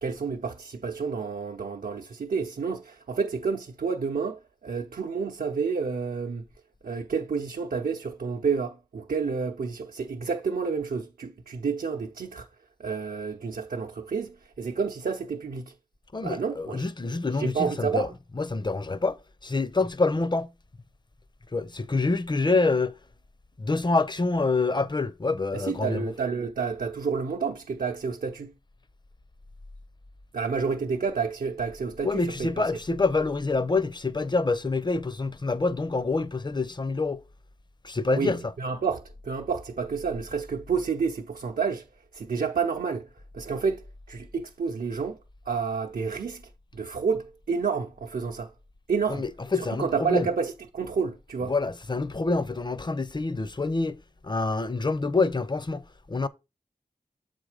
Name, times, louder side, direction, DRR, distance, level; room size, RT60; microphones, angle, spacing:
voice 1, 0.0-6.4 6.8-12.5 12.8-15.7 16.2-16.9 17.3-18.1 25.5-28.5 30.3-32.7 38.1-41.9 42.1-43.1 43.3-45.2 45.5-46.4 46.7-48.5 48.9-49.2 49.6-51.5, right 5 dB, 80° right, 0.6 m, -30 dB
voice 2, 16.1-18.1 18.4-19.2 19.4-20.5 21.5-23.0 23.6-26.1 32.0-37.2 37.8-38.4 49.1-50.3 51.5-54.0 54.2-56.3, left 3 dB, 30° left, 0.6 m, -26 dB
7.2 x 3.8 x 4.9 m
wide cardioid pair, 55°, 15 cm